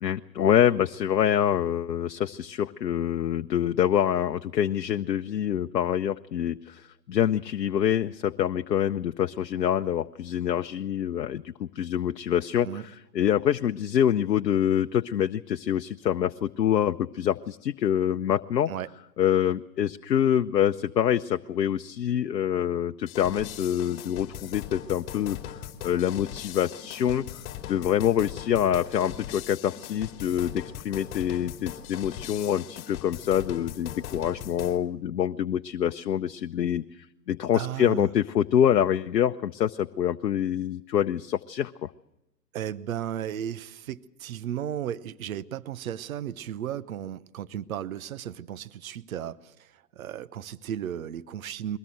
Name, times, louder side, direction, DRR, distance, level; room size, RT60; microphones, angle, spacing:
voice 1, 0.0-18.7 19.2-41.9, left 10 dB, 70° left, 7 dB, 0.8 m, -26 dB
sound 1, 23.1-34.8, left 10 dB, 30° left, 2.9 m, -40 dB
voice 2, 37.5-38.1 42.5-51.8, right 10 dB, 55° right, 16 dB, 0.9 m, -35 dB
22.5 x 19.0 x 7.8 m, 0.90 s
hypercardioid pair, 130°, 49 cm